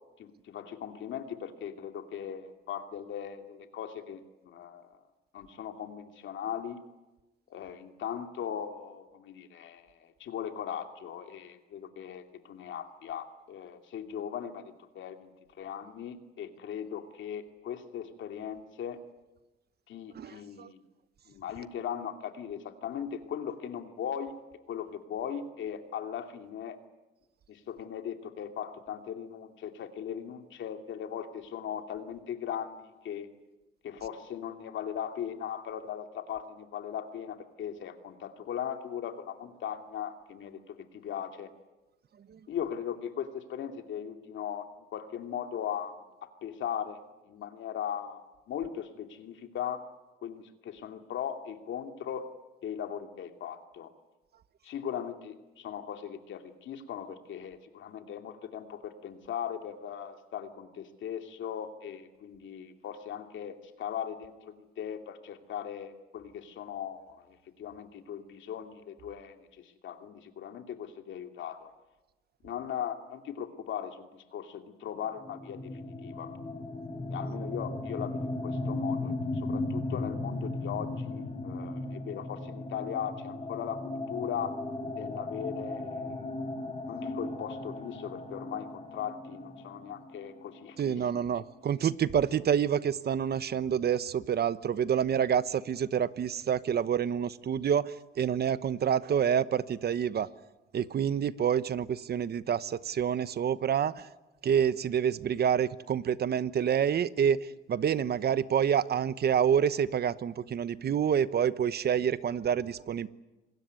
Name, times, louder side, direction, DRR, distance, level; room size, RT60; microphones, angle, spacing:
voice 1, 0.2-4.9 5.3-6.8 7.5-19.0 19.9-20.8 21.3-24.3 24.7-26.8 27.5-33.3 33.8-41.5 42.5-46.0 46.4-47.0 47.3-49.8 50.2-52.3 52.6-53.9 54.6-71.7 72.4-76.4 77.1-79.1 79.4-84.5 84.9-86.2 86.9-91.2, left 9 dB, 75° left, 6 dB, 2.6 m, -39 dB
voice 2, 20.1-20.7 42.3-42.4 90.8-100.3 100.7-104.1 104.4-113.1, right 8 dB, 55° right, 15 dB, 1.1 m, -28 dB
sound 1, 75.2-90.8, left 2 dB, 30° left, 4.6 m, -36 dB
26.0 x 20.5 x 9.7 m, 1.1 s
cardioid pair, 90°, 20 cm